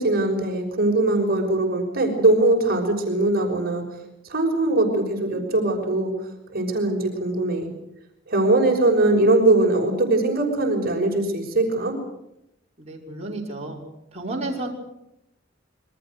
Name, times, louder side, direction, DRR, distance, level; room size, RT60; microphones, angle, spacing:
voice 1, 0.0-3.8 4.2-7.7 8.3-12.0, right 2 dB, 50° right, 2 dB, 6.1 m, -21 dB
voice 2, 12.8-13.8 14.1-14.7, right 2 dB, 35° right, -2 dB, 6.2 m, -31 dB
28.0 x 23.5 x 6.6 m, 0.82 s
head